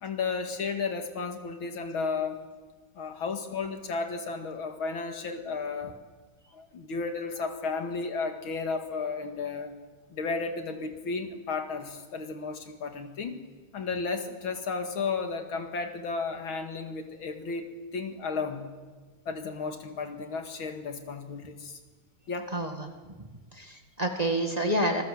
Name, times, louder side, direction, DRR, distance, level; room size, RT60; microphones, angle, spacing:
voice 1, 0.0-2.4 3.0-5.9 6.5-9.7 10.1-13.4 13.7-18.6 19.3-21.8 22.3-22.5, left 4 dB, 80° left, 5 dB, 2.9 m, -33 dB
voice 2, 22.5-22.9 23.5-25.0, right 1 dB, 20° right, 3 dB, 1.9 m, -28 dB
26.0 x 21.5 x 7.8 m, 1.4 s
omnidirectional pair, 2.2 m